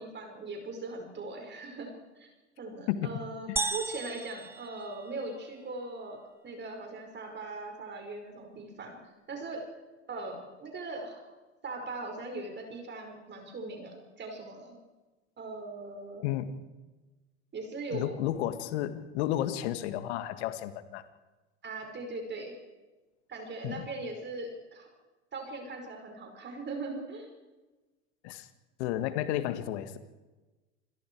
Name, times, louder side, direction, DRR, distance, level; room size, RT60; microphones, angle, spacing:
voice 1, 0.0-2.3 2.6-6.2 6.4-9.0 9.3-9.7 10.1-11.2 11.6-14.8 15.4-16.2 17.5-18.2 21.6-22.5 23.3-24.9 25.3-27.3, right 3 dB, 30° right, 3 dB, 5.1 m, -40 dB
voice 2, 2.9-3.2 3.5-3.7 16.2-16.6 17.9-21.0 23.6-23.9 28.2-28.5 28.8-30.0, left 12 dB, 65° left, 11 dB, 1.8 m, -32 dB
sound 1, 3.6-5.5, right 2 dB, 5° right, 0.6 m, -36 dB
27.5 x 21.5 x 4.7 m, 1.2 s
hypercardioid pair, 90°, 35 cm